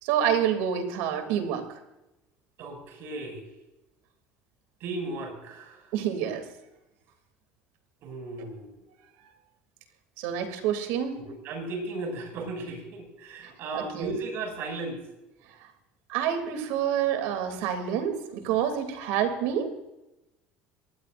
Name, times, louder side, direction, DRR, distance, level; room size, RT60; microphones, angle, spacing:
voice 1, 0.0-1.6 5.9-6.4 10.2-11.2 13.7-14.1 16.1-19.8, right 9 dB, 85° right, 6 dB, 3.1 m, -27 dB
voice 2, 2.6-3.5 4.8-5.9 8.0-8.8 11.1-15.0, right 2 dB, 60° right, 3 dB, 7.2 m, -36 dB
24.0 x 19.5 x 2.7 m, 0.94 s
cardioid pair, 120°, 5 cm